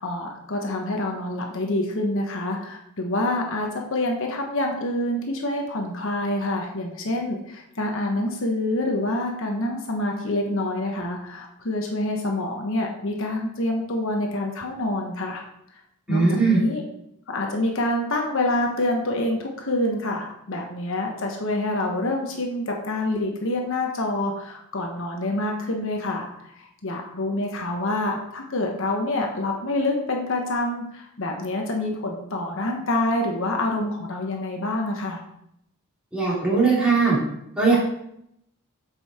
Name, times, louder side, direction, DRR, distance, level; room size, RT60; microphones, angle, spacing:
voice 1, 0.0-15.4 16.1-16.8 17.3-35.2, left 1 dB, 65° left, 2 dB, 1.1 m, -27 dB
voice 2, 16.1-16.6 36.1-37.2 37.6-37.8, right 4 dB, 5° right, -7 dB, 3.1 m, -19 dB
8.2 x 5.5 x 4.3 m, 0.76 s
head